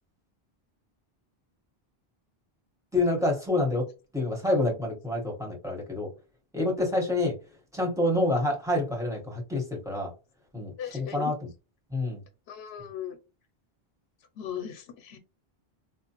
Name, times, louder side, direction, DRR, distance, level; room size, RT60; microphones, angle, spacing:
voice 1, 2.9-3.8 4.1-6.1 6.5-7.4 7.7-10.1 10.5-11.5 11.9-12.2, left 2 dB, 5° right, -1 dB, 1.0 m, -27 dB
voice 2, 10.8-11.3 12.5-13.2 14.4-15.2, left 9 dB, 85° left, 6 dB, 0.8 m, -37 dB
4.5 x 2.0 x 2.8 m, 0.30 s
omnidirectional pair, 1.0 m